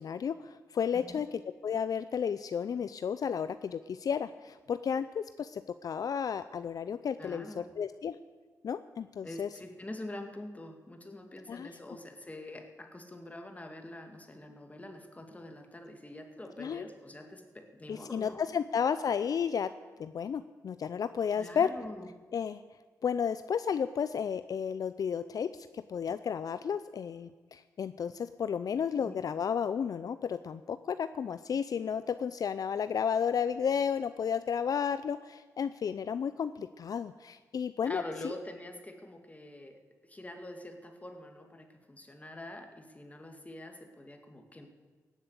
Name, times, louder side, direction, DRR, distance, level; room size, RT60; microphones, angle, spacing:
voice 1, 0.0-8.2 8.6-9.5 11.5-11.7 16.6-16.8 17.9-19.7 20.0-21.7 22.3-22.6 23.0-38.3, left 7 dB, 60° left, 12 dB, 0.5 m, -32 dB
voice 2, 0.9-1.2 7.2-7.7 9.2-18.6 21.3-22.1 29.0-29.2 37.8-44.7, left 1 dB, 20° left, 5 dB, 2.2 m, -45 dB
17.5 x 7.5 x 8.2 m, 1.4 s
cardioid pair, 65°, 7 cm